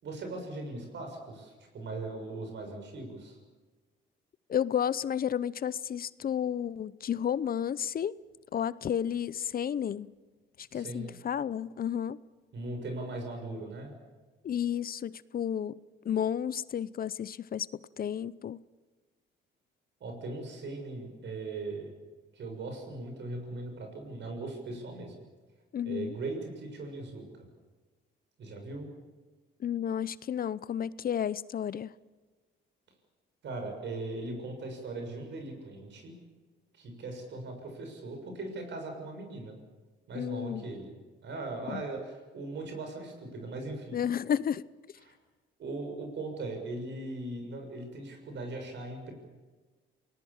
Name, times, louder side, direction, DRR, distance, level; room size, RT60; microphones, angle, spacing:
voice 1, 0.0-3.4 10.7-11.2 12.5-13.9 20.0-21.9 22.3-25.1 25.8-27.2 28.4-28.9 33.4-36.2 36.7-39.5 40.1-40.9 41.2-44.0 45.0-45.1 45.6-49.1, right 2 dB, 65° right, 6.9 m, -39 dB
voice 2, 4.5-8.2 8.5-10.1 10.6-12.2 14.4-17.7 18.0-18.6 25.7-26.2 29.6-31.9 40.1-40.6 41.7-41.8 43.9-44.7, left 9 dB, 50° left, 0.7 m, -32 dB
28.0 x 19.0 x 7.3 m
cardioid pair, 90°, 20 cm